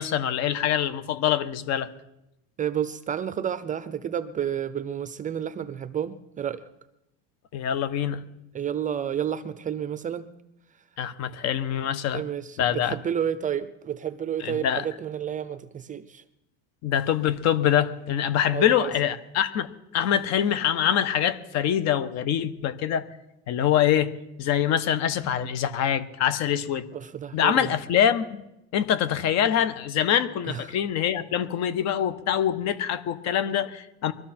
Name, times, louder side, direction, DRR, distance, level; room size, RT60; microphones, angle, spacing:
voice 1, 0.0-1.9 7.5-8.2 11.0-12.2 12.6-13.0 14.4-14.9 16.8-23.1 23.5-24.1 24.4-26.9 27.3-28.4 28.7-34.1, left 10 dB, 50° left, 1.2 m, -24 dB
voice 2, 2.6-6.6 8.5-10.3 12.1-16.2 18.5-18.9 26.9-27.7 30.5-30.7, right 9 dB, 20° right, 0.6 m, -30 dB
23.5 x 13.5 x 4.4 m
cardioid pair, 145°, 35 cm